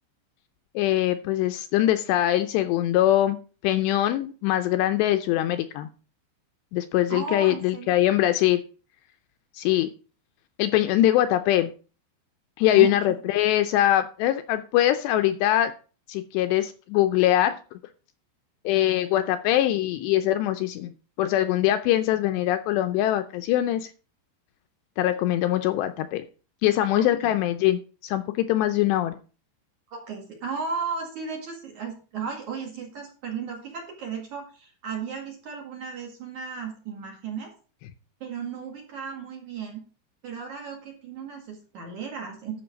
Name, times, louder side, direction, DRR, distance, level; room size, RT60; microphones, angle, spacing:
voice 1, 0.8-3.4 3.6-5.9 6.7-8.6 9.5-9.9 10.6-11.7 12.6-15.7 16.1-17.6 18.7-23.9 25.0-26.2 26.6-29.2, left 13 dB, 80° left, 9 dB, 2.6 m, -22 dB
voice 2, 7.1-8.0 12.7-12.9 26.9-27.3 29.9-37.5 38.2-39.8 40.2-42.6, right 6 dB, 50° right, 1 dB, 2.8 m, -35 dB
12.5 x 6.3 x 5.2 m, 0.37 s
omnidirectional pair, 5.3 m